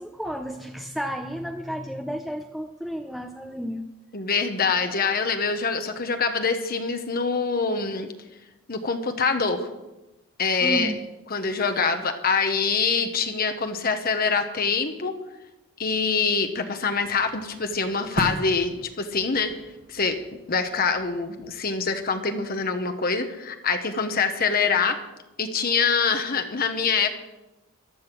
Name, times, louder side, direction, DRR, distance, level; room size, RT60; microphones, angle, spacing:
voice 1, 0.0-3.8 10.6-11.0, equal, ahead, 3 dB, 0.7 m, -32 dB
voice 2, 4.1-8.1 8.7-9.7 10.4-10.9 11.3-15.2 15.8-19.5 19.9-20.2 20.5-25.0 25.4-27.1, left 5 dB, 45° left, 6 dB, 1.1 m, -25 dB
sound 1, 17.0-22.3, right 1 dB, 40° right, 1.8 m, -38 dB
14.5 x 12.0 x 6.1 m, 1.0 s
head